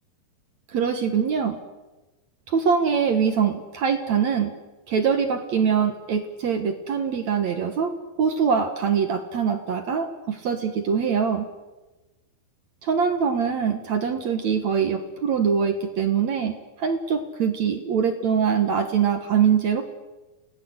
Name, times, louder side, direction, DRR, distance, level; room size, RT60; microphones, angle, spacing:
voice 1, 0.7-1.6 2.5-4.5 4.9-11.5 12.8-19.8, right 6 dB, 55° right, 6 dB, 2.2 m, -23 dB
29.0 x 18.5 x 8.1 m, 1.1 s
omnidirectional pair, 4.7 m